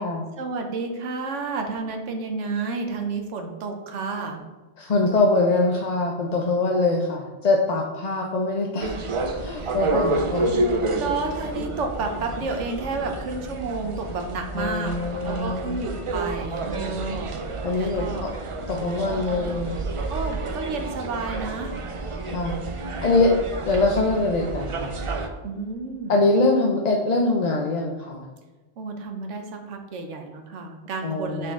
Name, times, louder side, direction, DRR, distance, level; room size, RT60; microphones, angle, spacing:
voice 1, 0.4-4.4 9.5-10.1 10.9-14.9 15.2-17.4 17.8-18.3 20.1-21.8 25.4-26.1 28.8-31.5, right 3 dB, 90° right, 4 dB, 1.1 m, -31 dB
voice 2, 4.8-9.0 9.4-10.5 14.5-15.7 17.6-18.1 18.7-19.8 22.3-22.5 23.0-23.3 23.7-24.9 26.1-28.3 31.0-31.5, left 2 dB, 45° left, 0 dB, 0.6 m, -23 dB
sound 1, 8.8-25.3, right 2 dB, 50° right, 0.4 m, -30 dB
6.5 x 4.3 x 3.6 m, 1.2 s
omnidirectional pair, 1.2 m